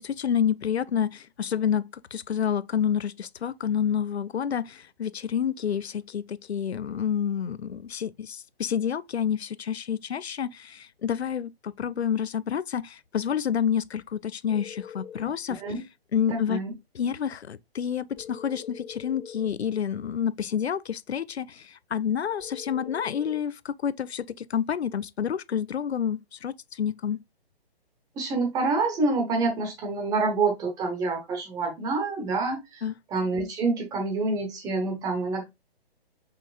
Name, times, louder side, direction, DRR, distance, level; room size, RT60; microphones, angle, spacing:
voice 1, 0.0-1.8 2.1-15.6 16.1-16.6 17.0-27.2 32.8-32.9, left 8 dB, 90° left, 0.5 m, -29 dB
sound 1, 14.5-15.3 18.2-19.6 22.4-23.4, left 8 dB, 20° left, 1.1 m, -43 dB
voice 2, 16.3-16.7 28.2-35.4, right 3 dB, 10° right, 1.0 m, -27 dB
5.7 x 3.5 x 2.4 m
figure-of-eight pair, 140°, 31 cm